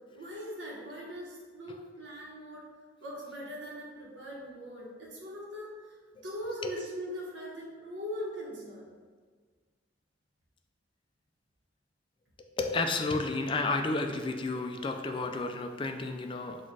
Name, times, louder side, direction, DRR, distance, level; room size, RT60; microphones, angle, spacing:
voice 1, 0.1-2.7 3.0-6.0 6.2-8.9, equal, 75° right, -4 dB, 0.9 m, -40 dB
voice 2, 12.6-16.6, left 3 dB, 25° left, 5 dB, 0.3 m, -31 dB
4.2 x 2.4 x 4.6 m, 1.6 s
head